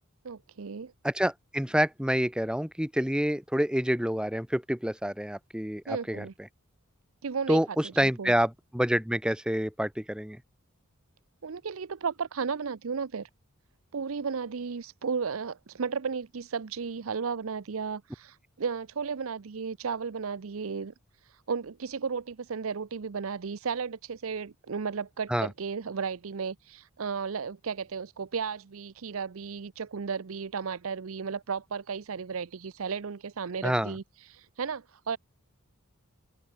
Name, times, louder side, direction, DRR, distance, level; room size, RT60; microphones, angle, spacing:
voice 1, 0.2-0.9 5.9-6.3 7.2-7.6 8.0-8.3 11.4-13.3 13.9-20.9 21.2-35.2, right 5 dB, 75° right, 0.6 m, -34 dB
voice 2, 1.0-6.3 7.5-10.4 25.3-25.5 33.6-33.9, equal, 5° right, 0.9 m, -27 dB
open air
head